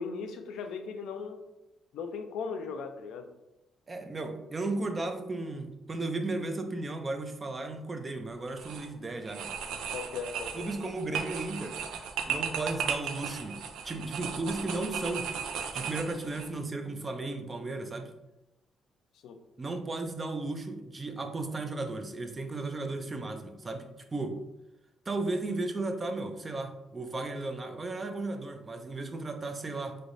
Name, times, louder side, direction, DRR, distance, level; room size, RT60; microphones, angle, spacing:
voice 1, 0.0-1.4 1.9-3.3 9.9-10.9 19.2-19.4, left 5 dB, 80° left, 6 dB, 0.3 m, -38 dB
voice 2, 3.9-9.5 10.5-11.8 12.3-13.6 13.8-15.3 15.7-18.1 19.6-23.9 24.1-24.4 25.1-30.0, right 2 dB, 30° right, 5 dB, 0.4 m, -35 dB
sound 1, 8.5-8.9 9.3-16.5, right 7 dB, 90° right, 0.4 m, -36 dB
3.2 x 3.0 x 2.5 m, 0.94 s
cardioid pair, 90°, 0 cm